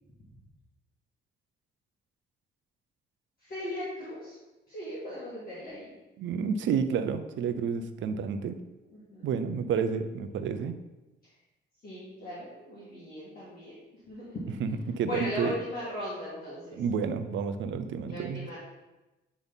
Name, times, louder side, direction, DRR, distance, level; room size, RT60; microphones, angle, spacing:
voice 1, 3.4-4.4 4.7-5.9 8.9-9.3 11.8-14.4 15.1-16.8 18.1-18.6, left 1 dB, 50° left, -8 dB, 2.0 m, -38 dB
voice 2, 6.2-8.6 9.2-10.8 14.6-15.6 16.8-18.5, right 6 dB, 70° right, 9 dB, 0.6 m, -30 dB
8.2 x 3.5 x 4.1 m, 1.1 s
cardioid pair, 90°, 20 cm